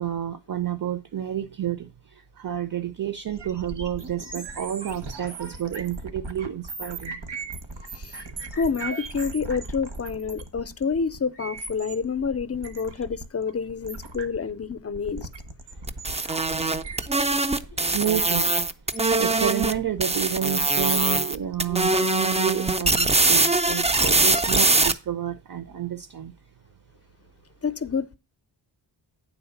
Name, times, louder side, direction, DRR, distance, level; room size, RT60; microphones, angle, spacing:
voice 1, 0.0-1.9 2.4-7.2 8.1-8.5 16.7-16.9 17.9-18.5 19.2-26.3, right 10 dB, 50° right, 0.7 m, -30 dB
sound 1, 3.3-21.9, right 2 dB, 70° right, 1.4 m, -38 dB
voice 2, 8.5-15.3 27.6-28.1, left 5 dB, 35° left, 0.5 m, -28 dB
sound 2, 15.9-19.7 20.0-21.4 21.6-24.9, right 2 dB, 15° right, 0.4 m, -22 dB
9.4 x 4.1 x 7.0 m
wide cardioid pair, 150°, 43 cm